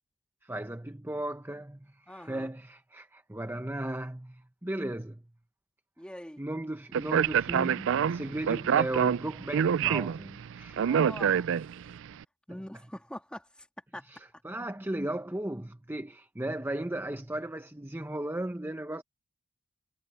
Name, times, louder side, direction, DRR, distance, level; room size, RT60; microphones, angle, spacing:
voice 1, 0.4-5.2 6.4-10.9 14.1-19.0, right 1 dB, 10° right, 0.8 m, -36 dB
voice 2, 2.1-2.5 6.0-6.4 10.7-11.5 12.5-13.7 13.9-14.4, equal, 5° left, 2.7 m, -44 dB
Speech, 6.9-12.0, right 8 dB, 60° right, 0.4 m, -27 dB
head